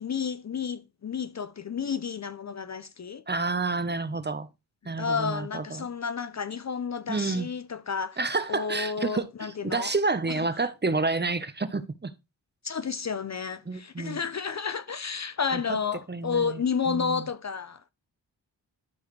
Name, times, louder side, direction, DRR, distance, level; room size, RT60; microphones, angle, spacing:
voice 1, 0.0-3.2 5.0-8.2 8.5-9.9 10.3-10.4 12.6-17.9, left 6 dB, 40° left, 0.6 m, -31 dB
voice 2, 3.3-4.5 4.8-5.9 7.1-7.5 8.2-12.1 13.7-14.2 15.5-15.6 16.1-16.6 16.9-17.3, right 3 dB, 25° right, 0.9 m, -29 dB
12.5 x 4.8 x 3.2 m
cardioid pair, 45°, 44 cm